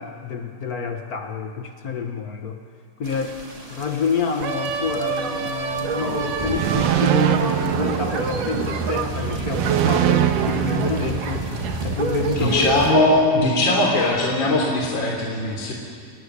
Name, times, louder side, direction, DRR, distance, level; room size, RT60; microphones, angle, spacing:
voice 1, 0.0-2.6 3.0-3.4 3.7-11.5 11.8-12.8 13.4-13.9, left 5 dB, 90° left, 5 dB, 0.8 m, -28 dB
sound 1, 3.0-12.9, right 1 dB, 15° right, 1.9 m, -33 dB
sound 2, 4.4-13.2, right 6 dB, 85° right, 3.1 m, -27 dB
sound 3, 6.6-8.7 9.5-11.7, right 12 dB, 70° right, 2.2 m, -23 dB
voice 2, 12.4-15.7, left 2 dB, 35° left, -2 dB, 3.9 m, -20 dB
27.5 x 19.5 x 9.9 m, 2.2 s
omnidirectional pair, 3.6 m